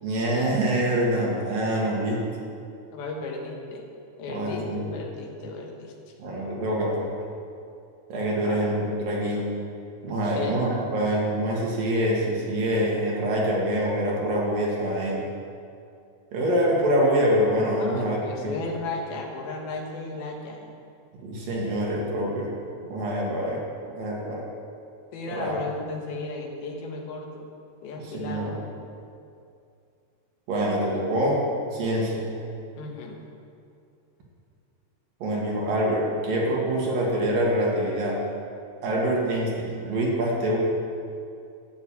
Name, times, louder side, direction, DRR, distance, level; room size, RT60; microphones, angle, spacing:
voice 1, 0.0-2.2 4.3-4.8 6.2-7.1 8.1-9.4 10.0-15.3 16.3-18.2 18.4-18.5 21.2-22.5 22.9-23.6 24.0-24.4 25.3-25.5 28.1-28.6 30.5-31.4 31.7-32.3 35.2-38.2 38.8-40.6, right 1 dB, 60° right, -3 dB, 3.4 m, -25 dB
voice 2, 2.9-3.8 4.2-5.9 8.4-8.7 9.3-9.5 10.2-10.6 11.0-11.1 17.7-20.7 25.1-27.5 27.8-28.6 32.8-33.2, left 3 dB, 65° left, 0 dB, 3.2 m, -35 dB
12.0 x 7.0 x 9.0 m, 2.5 s
omnidirectional pair, 4.9 m